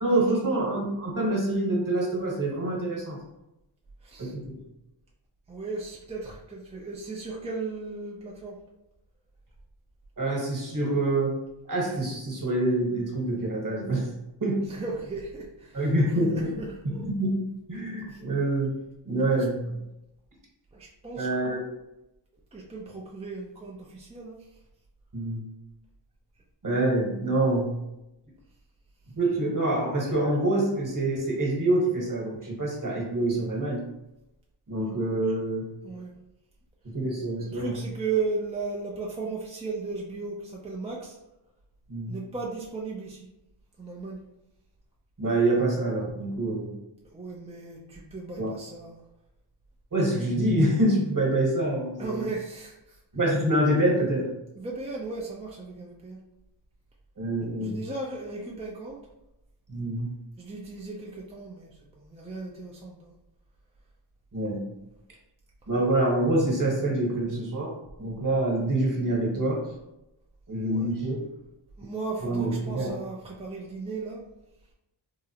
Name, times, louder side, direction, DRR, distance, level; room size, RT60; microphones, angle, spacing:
voice 1, 0.0-3.2 4.2-4.6 10.2-11.3 11.7-14.1 14.4-14.6 15.7-17.4 17.7-18.7 19.0-19.7 21.1-21.6 25.1-25.4 26.6-27.7 29.2-33.8 34.7-35.7 36.8-37.8 41.9-42.2 45.2-46.7 48.4-48.5 49.9-52.3 53.1-54.3 57.2-57.8 59.7-60.1 64.3-64.7 65.7-67.7 68.0-69.6 70.5-71.2 72.2-72.9, right 1 dB, 40° right, -2 dB, 1.2 m, -26 dB
voice 2, 4.0-4.3 5.5-8.6 14.7-15.9 16.9-17.0 18.1-18.2 19.3-19.4 20.7-21.3 22.5-24.4 35.8-36.1 37.4-41.2 42.1-43.3 43.8-44.2 47.1-49.0 52.0-53.0 54.6-56.2 57.6-59.0 60.4-63.1 70.7-70.9 71.8-74.2, right 4 dB, 15° right, -3 dB, 0.4 m, -36 dB
3.7 x 2.0 x 2.8 m, 0.90 s
wide cardioid pair, 80°, 47 cm